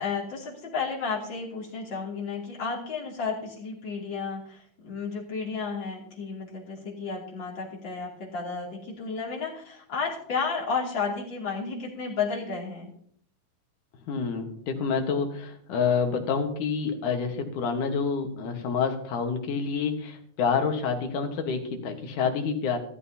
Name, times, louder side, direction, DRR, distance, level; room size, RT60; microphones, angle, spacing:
voice 1, 0.0-12.9, left 5 dB, 35° left, -4 dB, 3.1 m, -32 dB
voice 2, 14.1-22.8, left 5 dB, 65° left, 4 dB, 2.7 m, -28 dB
14.5 x 13.5 x 2.8 m, 0.63 s
omnidirectional pair, 4.2 m